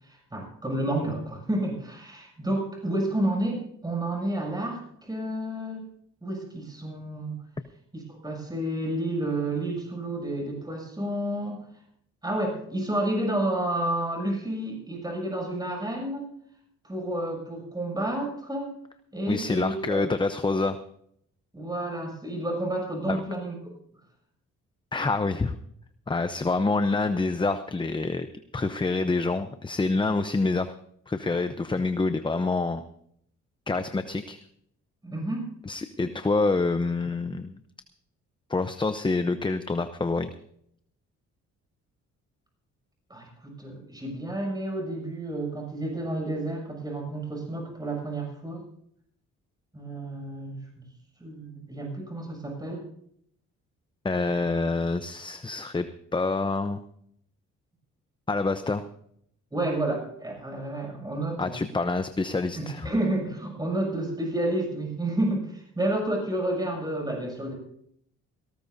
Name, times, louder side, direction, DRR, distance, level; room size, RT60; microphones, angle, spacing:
voice 1, 0.0-5.8 6.2-7.4 7.9-11.6 12.2-16.3 16.8-18.7 19.1-20.0 21.5-23.6 35.0-35.5 43.1-48.6 49.7-50.8 51.2-52.8 59.5-61.7 62.6-67.6, right 1 dB, 15° right, 0 dB, 7.1 m, -30 dB
voice 2, 19.3-20.8 23.1-23.2 24.9-25.6 26.1-28.3 28.5-30.7 31.1-32.8 33.7-34.4 35.7-37.6 38.5-40.3 54.0-55.9 56.1-56.8 58.3-58.8 61.4-62.9, left 3 dB, 15° left, 10 dB, 0.8 m, -27 dB
18.5 x 18.5 x 2.7 m, 0.68 s
cardioid pair, 90°, 30 cm